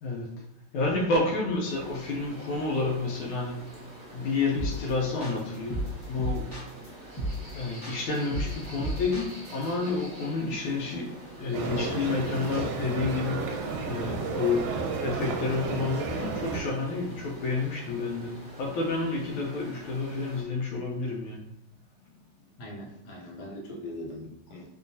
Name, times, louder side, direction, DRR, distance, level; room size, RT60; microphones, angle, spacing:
voice 1, 0.7-3.6 4.1-6.6 7.5-21.5, left 3 dB, 80° left, -1 dB, 1.6 m, -30 dB
sound 1, 1.6-20.4, right 1 dB, 35° right, 0.8 m, -46 dB
sound 2, 4.6-4.9 5.2-6.9 7.2-7.5 7.8-9.6, right 1 dB, 35° left, 0.4 m, -33 dB
sound 3, 11.5-16.6, right 5 dB, 85° right, 1.4 m, -32 dB
voice 2, 22.6-24.7, left 1 dB, 60° left, -2 dB, 1.4 m, -41 dB
3.7 x 3.4 x 2.7 m, 0.80 s
omnidirectional pair, 2.3 m